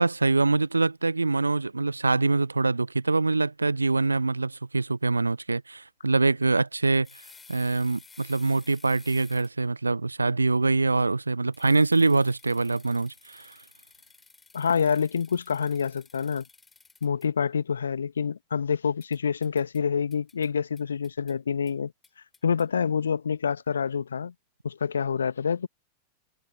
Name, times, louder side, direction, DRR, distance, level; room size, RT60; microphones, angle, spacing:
voice 1, 0.0-7.1 7.5-13.5, right 3 dB, 80° right, 0.3 m, -24 dB
sound 1, 7.0-9.7 11.5-17.3 19.0-19.8 20.1-20.5 20.8-21.3 21.7-21.8 22.0-22.6, left 4 dB, 15° left, 7.3 m, -54 dB
voice 2, 14.5-16.4 17.0-21.9 22.4-24.3 24.6-25.7, left 6 dB, 70° left, 1.4 m, -27 dB
figure-of-eight pair, 90°, 0 cm